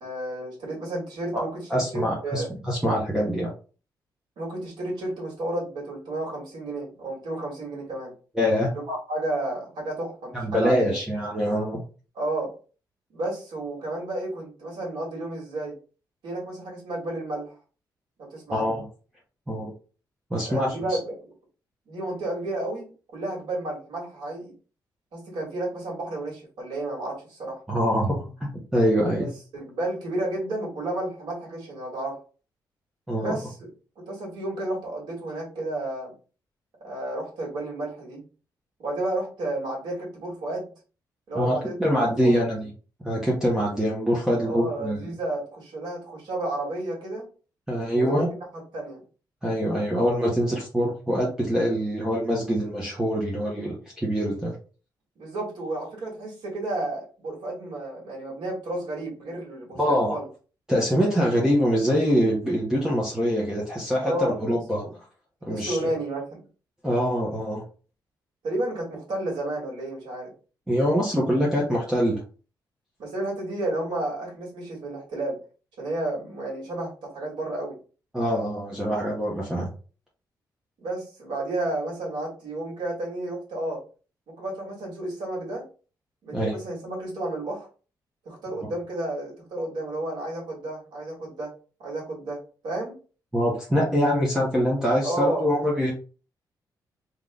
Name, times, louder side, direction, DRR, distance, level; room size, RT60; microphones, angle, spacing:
voice 1, 0.0-2.5 4.4-8.1 8.7-11.0 12.1-12.5 13.1-15.8 16.2-17.5 18.3-18.7 20.4-21.1 21.9-24.5 25.1-27.6 29.2-32.2 33.1-33.7 34.0-36.1 36.8-38.2 38.8-40.7 41.3-41.7 42.0-42.4 44.4-47.3 47.9-48.2 48.7-49.0 55.2-60.3 64.0-64.9 65.5-66.5 68.4-70.3 73.0-75.4 75.8-77.8 80.8-83.8 84.3-85.6 86.2-87.7 88.3-91.5 91.8-93.0 95.0-95.5, right 2 dB, 80° right, -3 dB, 2.3 m, -32 dB
voice 2, 1.7-3.5 8.3-8.7 10.3-11.8 18.5-18.8 19.5-19.7 20.3-21.0 27.7-29.3 33.1-33.4 41.3-42.7 43.0-45.1 47.7-48.3 49.4-54.6 59.8-60.2 60.7-64.8 65.4-65.9 66.8-67.6 70.7-72.2 78.1-79.7 86.3-86.5 93.3-95.9, equal, 10° right, -4 dB, 1.0 m, -24 dB
3.7 x 3.1 x 3.7 m, 0.37 s
cardioid pair, 140°, 7 cm